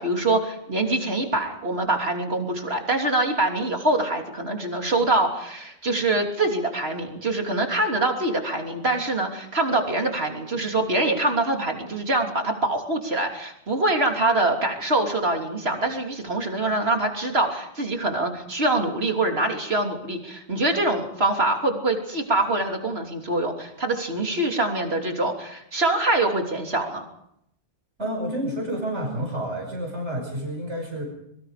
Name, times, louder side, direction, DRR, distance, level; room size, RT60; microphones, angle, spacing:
voice 1, 0.0-27.1, right 2 dB, 65° right, 2 dB, 3.5 m, -24 dB
voice 2, 28.0-31.0, right 1 dB, 80° right, 1 dB, 5.9 m, -29 dB
25.0 x 23.0 x 5.1 m, 0.76 s
omnidirectional pair, 1.2 m